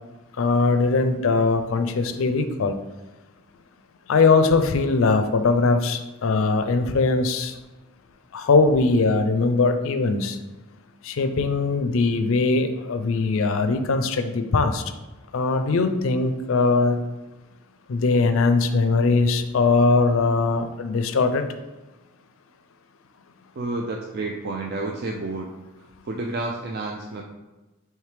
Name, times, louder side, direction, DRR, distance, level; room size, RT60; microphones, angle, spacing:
voice 1, 0.4-2.7 4.1-7.5 8.3-10.4 11.0-14.8 15.3-17.0 17.9-21.4, left 3 dB, 70° left, 8 dB, 0.4 m, -21 dB
voice 2, 23.6-25.5 25.8-27.2, right 2 dB, 45° right, 1 dB, 0.3 m, -30 dB
4.8 x 3.1 x 3.3 m, 1.1 s
head